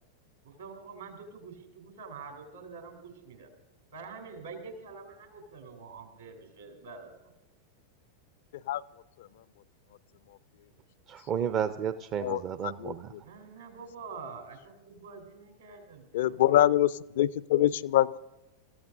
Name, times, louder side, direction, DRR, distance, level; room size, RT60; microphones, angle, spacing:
voice 1, 0.4-3.5 3.9-7.3 13.2-16.4, right 4 dB, 70° right, 3.8 m, -46 dB
voice 2, 11.1-13.1, right 8 dB, 35° right, 0.5 m, -32 dB
voice 3, 12.2-12.9 16.1-18.2, left 13 dB, 55° left, 0.4 m, -25 dB
28.5 x 15.0 x 2.7 m
figure-of-eight pair, 90°, 0 cm